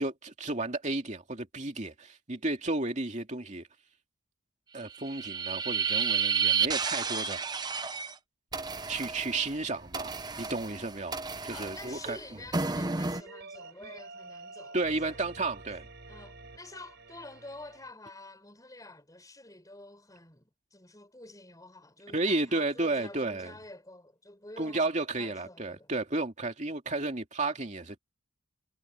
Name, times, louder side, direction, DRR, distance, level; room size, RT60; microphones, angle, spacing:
voice 1, 0.0-3.7 4.7-7.7 8.9-12.2 14.7-15.9 22.1-23.5 24.6-28.0, right 2 dB, 35° right, 2.6 m, -33 dB
sound 1, 4.9-8.1 8.5-13.2, right 6 dB, 20° right, 0.9 m, -31 dB
sound 2, 8.8-11.2 13.1-17.9, right 3 dB, 55° right, 4.1 m, -50 dB
voice 2, 11.5-15.2 16.1-24.9 25.2-25.9, left 2 dB, 15° left, 6.6 m, -49 dB
head